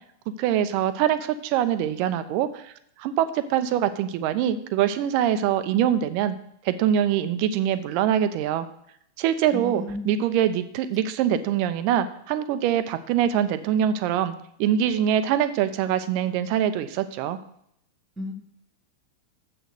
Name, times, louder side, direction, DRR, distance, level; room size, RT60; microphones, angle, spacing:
voice 1, 0.4-2.7 3.0-6.4 6.6-8.7 9.2-14.3 14.6-17.4, right 10 dB, 45° right, 12 dB, 0.8 m, -24 dB
voice 2, 9.5-10.2 18.2-18.3, left 1 dB, 15° right, 6 dB, 1.8 m, -33 dB
7.8 x 6.5 x 6.5 m, 0.72 s
figure-of-eight pair, 90°, 0 cm